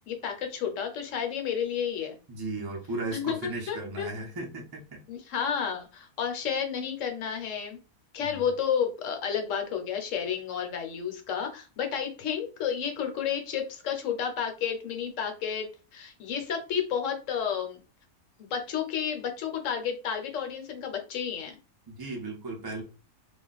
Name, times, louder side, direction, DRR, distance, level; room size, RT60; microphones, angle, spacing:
voice 1, 0.1-2.2 3.1-4.1 5.1-7.8 8.1-17.8 18.4-21.6, left 7 dB, 70° left, 4 dB, 1.0 m, -31 dB
voice 2, 2.3-5.0 8.2-8.4 21.9-22.8, right 2 dB, 25° right, -1 dB, 0.6 m, -36 dB
2.4 x 2.2 x 3.9 m, 0.33 s
omnidirectional pair, 1.4 m